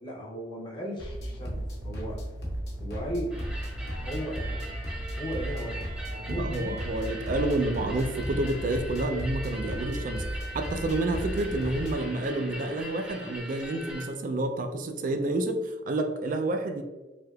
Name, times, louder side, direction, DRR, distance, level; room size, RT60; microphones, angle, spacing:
voice 1, 0.0-2.2 2.8-3.3 4.0-4.8 5.2-6.8 7.3-7.4, equal, 25° left, -2 dB, 0.7 m, -36 dB
sound 1, 1.0-12.1, equal, 65° left, 0.9 m, -35 dB
sound 2, 3.3-14.1, right 1 dB, 5° right, 0.7 m, -41 dB
voice 2, 6.3-10.2 10.5-16.8, right 2 dB, 45° right, 7 dB, 0.3 m, -29 dB
3.3 x 2.7 x 2.3 m, 1.1 s
head